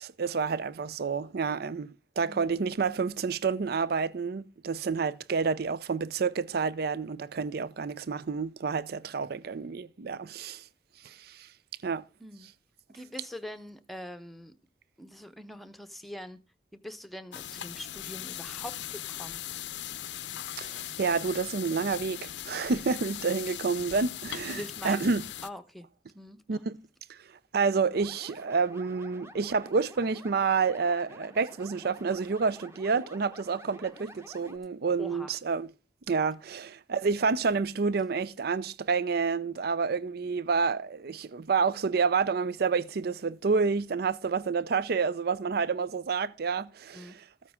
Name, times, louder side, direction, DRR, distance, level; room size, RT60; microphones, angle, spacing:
voice 1, 0.0-10.6 11.0-11.5 11.8-12.0 20.6-25.2 26.5-26.8 27.1-27.2 27.5-35.7 36.1-47.2, right 5 dB, 60° right, 0.5 m, -29 dB
voice 2, 2.3-2.7 12.2-12.5 12.9-14.5 15.0-16.4 16.7-19.4 24.5-25.1 25.4-25.9 26.1-26.6 35.0-35.3 46.9-47.2, left 1 dB, ahead, 0.8 m, -43 dB
sound 1, 17.3-25.5, left 12 dB, 90° left, 0.6 m, -39 dB
sound 2, 27.9-34.6, right 1 dB, 15° right, 1.1 m, -50 dB
14.0 x 9.3 x 3.6 m
head